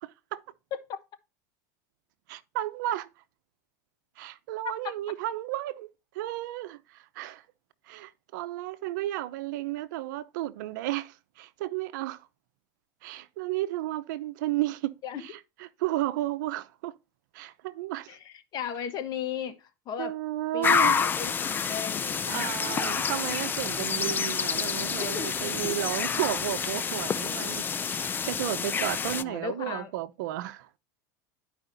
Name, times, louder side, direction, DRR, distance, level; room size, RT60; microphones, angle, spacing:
voice 1, 2.3-3.1 4.2-5.9 6.1-7.4 7.9-12.3 13.0-14.9 15.8-17.0 17.3-18.2 20.0-21.1 22.3-30.7, right 15 dB, 75° right, 0.8 m, -33 dB
voice 2, 18.1-20.1 20.5-22.6 25.0-25.3 25.7-25.8 29.2-29.9, left 8 dB, 40° left, 1.2 m, -36 dB
sound 1, 20.6-29.2, left 6 dB, 20° left, 0.3 m, -28 dB
11.5 x 4.9 x 2.7 m
supercardioid pair, 120°, 10 cm